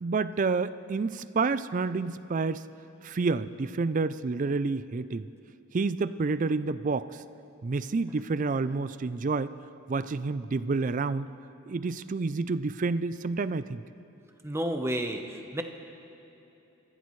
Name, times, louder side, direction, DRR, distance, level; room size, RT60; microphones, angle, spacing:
voice 1, 0.0-2.7 3.0-5.3 5.7-7.2 7.6-9.5 9.9-11.3 11.7-13.8, right 4 dB, 35° right, 14 dB, 0.4 m, -29 dB
voice 2, 14.4-15.6, right 1 dB, 10° right, 4 dB, 0.9 m, -31 dB
27.0 x 15.0 x 3.2 m, 3.0 s
head